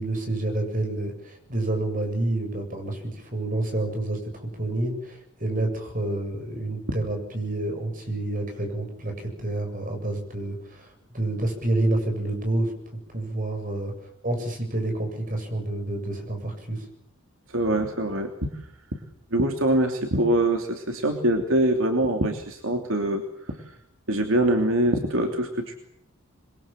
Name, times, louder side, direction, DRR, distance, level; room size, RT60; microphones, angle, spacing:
voice 1, 0.0-10.9 11.1-12.7 13.1-16.9, right 2 dB, 40° right, 5 dB, 7.7 m, -28 dB
voice 2, 17.5-18.5 18.9-19.0 19.3-23.6 24.1-25.8, right 1 dB, 70° right, 4 dB, 2.9 m, -24 dB
27.5 x 22.5 x 7.5 m, 0.75 s
head